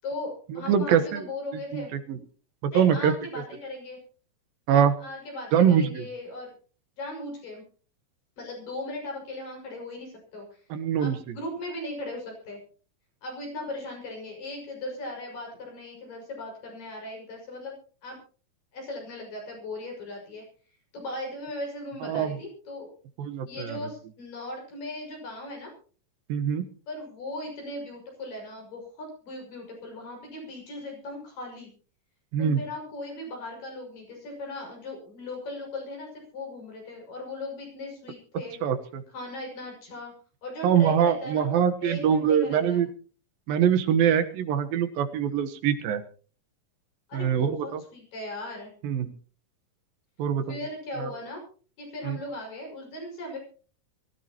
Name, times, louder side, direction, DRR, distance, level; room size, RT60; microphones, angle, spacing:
voice 1, 0.0-1.9 2.7-4.0 5.0-6.5 7.0-7.6 8.4-10.6 11.0-12.6 13.2-17.8 18.0-18.2 18.7-20.4 20.9-22.9 23.5-25.7 26.9-31.7 32.4-38.6 39.1-40.1 40.4-42.8 47.1-48.7 50.5-51.4 51.8-53.4, left 1 dB, 75° left, 0 dB, 7.7 m, -38 dB
voice 2, 0.7-1.2 1.5-2.2 2.6-3.1 4.7-4.9 5.5-6.1 10.7-11.4 22.0-22.4 23.2-23.8 26.3-26.7 32.3-32.6 38.6-39.0 40.6-42.9 43.5-46.0 47.1-47.8 48.8-49.1 50.2-50.6 51.0-51.1 52.0-52.2, right 8 dB, 85° right, 10 dB, 3.1 m, -24 dB
23.0 x 15.0 x 3.0 m, 0.39 s
omnidirectional pair, 4.0 m